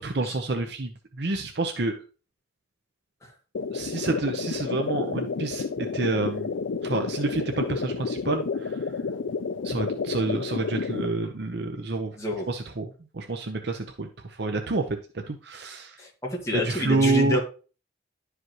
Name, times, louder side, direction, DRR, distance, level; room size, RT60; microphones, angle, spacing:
voice 1, 0.0-1.9 3.7-6.5 6.8-8.8 9.6-12.2 12.5-15.0 15.3-16.0 16.5-17.4, right 3 dB, 60° right, 5 dB, 0.8 m, -28 dB
sound 1, 3.5-11.1, left 4 dB, 80° left, 0.4 m, -30 dB
voice 2, 12.2-12.5 16.0-17.4, left 1 dB, 15° left, -1 dB, 1.9 m, -28 dB
11.0 x 5.0 x 3.0 m, 0.36 s
head